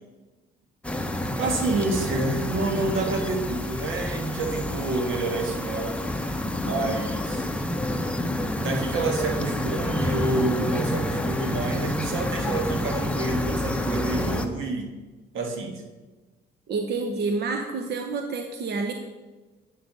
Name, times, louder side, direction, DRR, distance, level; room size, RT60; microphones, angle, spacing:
sound 1, 0.8-14.5, left 1 dB, 5° left, 0.8 m, -28 dB
voice 1, 1.4-6.0 6.6-7.5 8.6-14.9 15.3-15.8, right 2 dB, 80° right, 3 dB, 1.6 m, -28 dB
voice 2, 16.7-18.9, right 4 dB, 55° right, 4 dB, 0.9 m, -28 dB
9.2 x 6.1 x 5.4 m, 1.2 s
cardioid pair, 90°, 20 cm